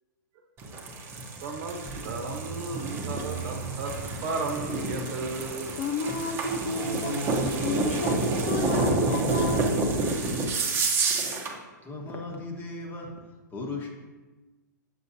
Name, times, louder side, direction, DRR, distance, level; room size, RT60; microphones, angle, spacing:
sound 1, 0.6-11.6, right 2 dB, 25° right, 1.0 m, -29 dB
sound 2, 1.2-5.9 6.7-10.1, right 3 dB, 70° right, 1.1 m, -38 dB
voice 1, 1.4-5.7, right 3 dB, 45° right, 3 dB, 1.1 m, -34 dB
voice 2, 5.8-7.2 7.6-8.2 8.5-9.8, left 2 dB, 45° left, 6 dB, 0.6 m, -31 dB
voice 3, 11.8-13.1 13.5-13.9, left 3 dB, 20° left, 0 dB, 1.2 m, -36 dB
7.5 x 6.7 x 2.8 m, 1.2 s
hypercardioid pair, 125°, 10 cm